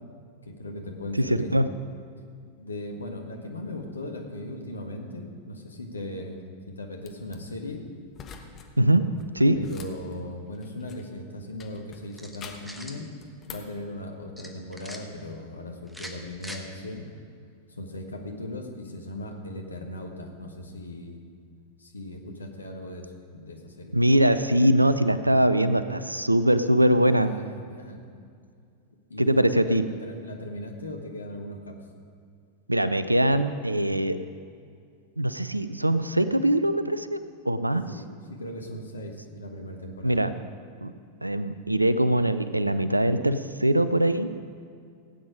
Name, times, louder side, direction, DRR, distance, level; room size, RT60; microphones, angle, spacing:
voice 1, 0.4-1.5 2.6-6.4 6.7-7.8 9.5-13.1 13.4-17.1 17.7-21.2 21.8-24.0 27.0-28.0 29.1-31.8 37.9-40.2, left 1 dB, 75° left, 3 dB, 1.5 m, -38 dB
voice 2, 1.3-1.7 8.8-9.0 9.3-9.6 23.9-27.3 29.2-29.8 32.7-34.2 35.2-37.9 40.0-40.3 40.8-40.9 41.2-44.3, right 1 dB, 85° right, 13 dB, 0.5 m, -22 dB
sound 1, 7.0-7.4 8.1-8.7 9.0-11.1 11.6-12.8 13.2-13.8, left 6 dB, 30° left, 1.2 m, -46 dB
sound 2, 12.1-13.0 14.4-15.0 15.9-16.6, equal, ahead, 1.2 m, -42 dB
16.5 x 8.9 x 5.1 m, 2.3 s
figure-of-eight pair, 90°, 0 cm